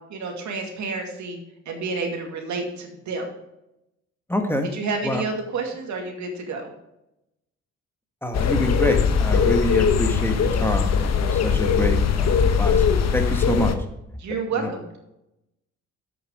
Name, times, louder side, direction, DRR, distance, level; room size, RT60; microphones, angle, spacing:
voice 1, 0.1-1.4 1.7-3.3 4.7-6.7 14.2-15.0, right 4 dB, 70° right, 3 dB, 2.4 m, -29 dB
voice 2, 4.3-4.7 5.0-5.2 8.2-12.8 13.1-13.7 14.6-14.7, left 1 dB, 5° left, 4 dB, 1.3 m, -26 dB
sound 1, 8.3-13.8, left 6 dB, 60° left, 1.0 m, -20 dB
8.2 x 6.8 x 5.3 m, 0.86 s
cardioid pair, 90°, 30 cm